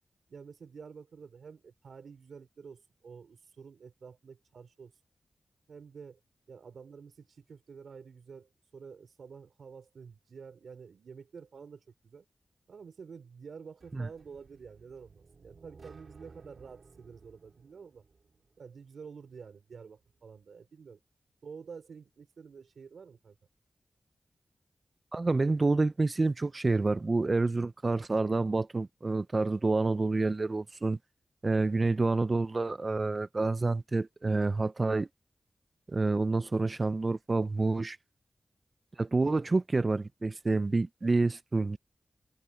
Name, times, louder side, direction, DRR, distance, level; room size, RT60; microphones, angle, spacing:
voice 1, 0.3-4.9 5.7-6.2 6.5-12.2 12.7-18.0 18.6-21.0 21.4-23.4, right 6 dB, 85° right, 4.6 m, -49 dB
sound 1, 13.8-18.7, right 4 dB, 60° right, 2.5 m, -56 dB
voice 2, 25.1-31.0 31.4-35.1 35.9-38.0 38.9-41.8, right 3 dB, 40° right, 0.4 m, -28 dB
wide cardioid pair, 80°, 0 cm